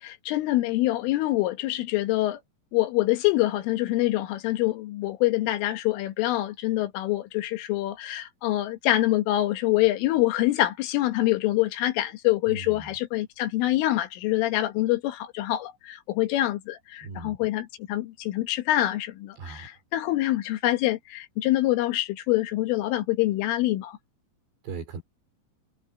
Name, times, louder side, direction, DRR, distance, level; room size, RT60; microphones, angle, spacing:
voice 1, 0.0-2.4 2.7-24.0, left 16 dB, 85° left, 4.0 m, -25 dB
voice 2, 12.5-12.9 17.0-17.4 19.4-19.8 24.6-25.0, right 5 dB, 60° right, 5.8 m, -38 dB
omnidirectional pair, 5.6 m